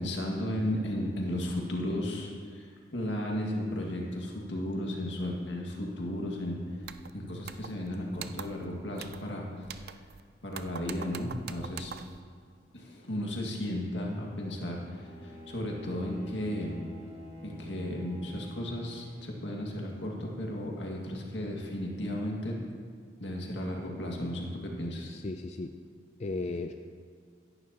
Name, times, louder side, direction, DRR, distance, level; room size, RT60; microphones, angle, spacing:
voice 1, 0.0-10.0 10.4-11.9 12.7-16.8 17.4-22.6 23.2-25.1, left 1 dB, 80° left, -1 dB, 2.0 m, -34 dB
sound 1, 6.8-7.1 7.4-7.9 8.1-8.6 9.0-9.3 9.6-10.2 10.5-12.2, right 7 dB, 55° right, 0.4 m, -44 dB
Bowed string instrument, 14.8-19.6, equal, 30° right, 2.9 m, -47 dB
voice 2, 25.1-25.7 26.2-26.7, left 3 dB, 35° left, 6 dB, 0.4 m, -35 dB
16.5 x 11.0 x 3.0 m, 2.2 s
head